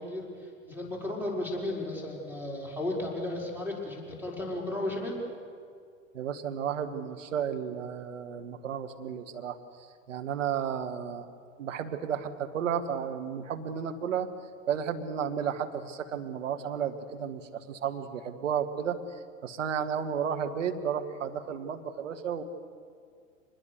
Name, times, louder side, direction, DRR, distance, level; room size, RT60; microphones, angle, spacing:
voice 1, 0.0-5.2, left 1 dB, 5° right, -2 dB, 5.9 m, -34 dB
voice 2, 6.1-9.6 10.1-11.3 11.6-14.3 14.7-19.0 19.4-22.4, right 8 dB, 70° right, 7 dB, 1.7 m, -32 dB
24.5 x 21.0 x 6.6 m, 2.2 s
figure-of-eight pair, 90°, 39 cm